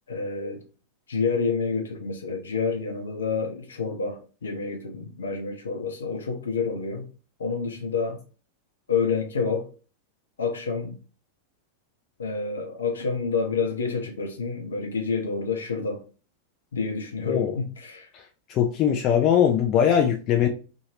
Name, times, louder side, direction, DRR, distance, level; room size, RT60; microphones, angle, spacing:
voice 1, 0.1-0.6 1.1-7.1 7.4-8.2 8.9-9.7 10.4-10.9 12.2-16.0 16.7-18.1, left 5 dB, 70° left, 0.8 m, -28 dB
voice 2, 18.5-20.5, left 9 dB, 35° left, 0.4 m, -21 dB
2.8 x 2.7 x 2.9 m
figure-of-eight pair, 90°, 0 cm